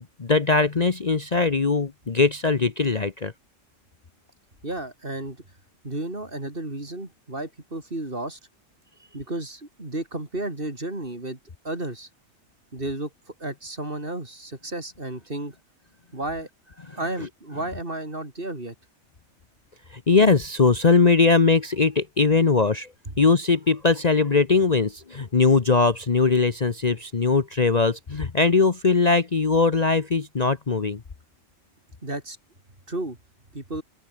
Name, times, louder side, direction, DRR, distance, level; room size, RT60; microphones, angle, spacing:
voice 1, 0.0-3.3 16.9-17.0 19.9-22.9 23.2-31.0, left 4 dB, 35° left, 1.1 m, -20 dB
voice 2, 4.6-5.4 5.8-8.4 9.1-11.4 11.6-12.1 12.7-13.1 13.4-15.6 16.1-16.5 17.0-18.7 32.0-32.4 32.9-33.2 33.5-33.8, right 2 dB, 45° right, 4.6 m, -32 dB
open air
omnidirectional pair, 1.3 m